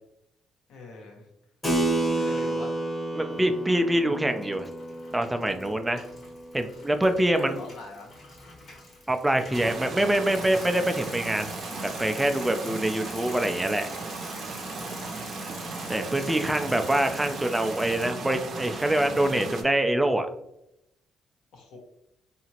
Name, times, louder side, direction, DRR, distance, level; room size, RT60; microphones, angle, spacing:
voice 1, 0.7-1.3 2.0-2.8 7.2-8.1 12.5-12.8 15.1-15.6 21.5-21.8, left 3 dB, 80° left, 1 dB, 0.8 m, -44 dB
Keyboard (musical), 1.6-7.7, right 2 dB, 20° left, 0.8 m, -31 dB
voice 2, 3.1-4.7 5.1-6.0 6.5-7.6 9.1-11.5 12.0-13.9 15.9-20.3, right 1 dB, 10° right, 7 dB, 0.3 m, -25 dB
Bicycle, 3.6-4.0 4.3-18.0, left 2 dB, 60° left, 1.1 m, -46 dB
sound 1, 9.5-19.6, right 3 dB, 60° right, 0.5 m, -36 dB
2.8 x 2.5 x 2.8 m, 0.80 s
cardioid pair, 90°, 0 cm